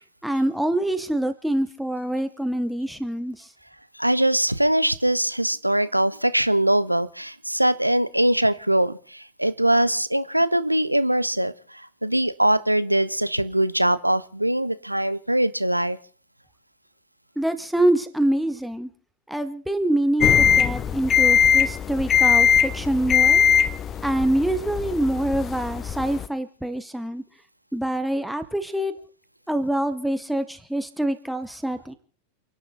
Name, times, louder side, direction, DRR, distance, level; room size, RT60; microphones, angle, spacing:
voice 1, 0.2-3.5 17.4-18.9 19.3-23.4 24.0-27.2 27.7-28.9 29.5-32.0, right 1 dB, ahead, 9 dB, 1.8 m, -25 dB
voice 2, 3.9-16.0, right 1 dB, 85° right, 16 dB, 0.9 m, -22 dB
sound 1, 20.2-26.3, left 8 dB, 25° left, 0.8 m, -20 dB
29.5 x 10.5 x 4.0 m, 0.44 s
figure-of-eight pair, 90°, 0 cm